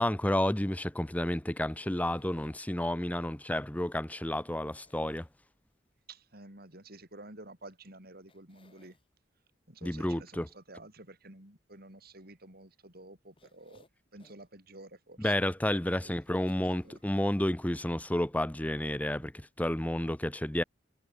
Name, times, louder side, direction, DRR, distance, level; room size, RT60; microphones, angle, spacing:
voice 1, 0.0-5.3 9.8-10.5 15.2-19.3 19.6-20.6, left 1 dB, 10° left, 0.7 m, -31 dB
sound 1, 1.7-2.9 4.8-5.8 7.7-7.8 8.3-9.1 13.4-14.5 15.0-15.1 16.5-17.4 18.0-18.1 18.3-18.4, left 2 dB, 30° left, 6.9 m, -64 dB
voice 2, 6.1-9.0 9.7-13.8 14.1-15.3 16.0-17.0, right 2 dB, 55° right, 6.8 m, -51 dB
head